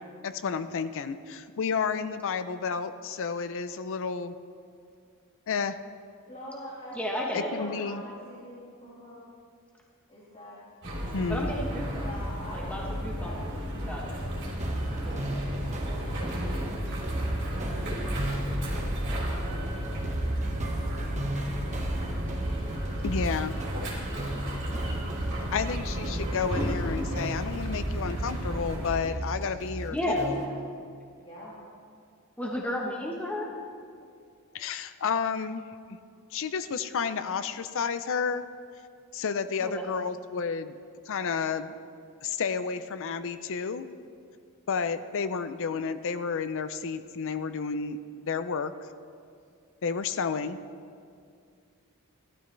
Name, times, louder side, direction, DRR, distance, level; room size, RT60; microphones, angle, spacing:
voice 1, 0.2-4.3 5.5-5.8 7.3-8.0 11.1-11.5 23.0-23.6 25.5-30.4 34.5-35.6 36.3-38.4 39.1-40.8 41.1-41.7 42.2-43.9 44.7-48.0 48.2-48.7 49.8-50.6, left 5 dB, 60° left, 12 dB, 0.5 m, -31 dB
voice 2, 6.3-7.0 7.2-9.3 10.1-10.6 11.9-14.1 14.7-16.8 17.4-19.1 19.7-21.4 22.3-23.6 24.2-24.6 30.1-30.7 31.2-31.6, equal, 25° left, -7 dB, 2.0 m, -46 dB
voice 3, 6.9-7.5 11.3-12.0 12.5-13.3 13.6-14.2 29.9-30.2 32.4-33.5 39.6-39.8, left 1 dB, 5° left, -2 dB, 1.0 m, -32 dB
sound 1, 10.8-29.0, equal, 55° right, 3.3 m, -33 dB
sound 2, 14.6-30.5, right 1 dB, 30° right, 1.2 m, -35 dB
15.5 x 12.5 x 3.3 m, 2.3 s
head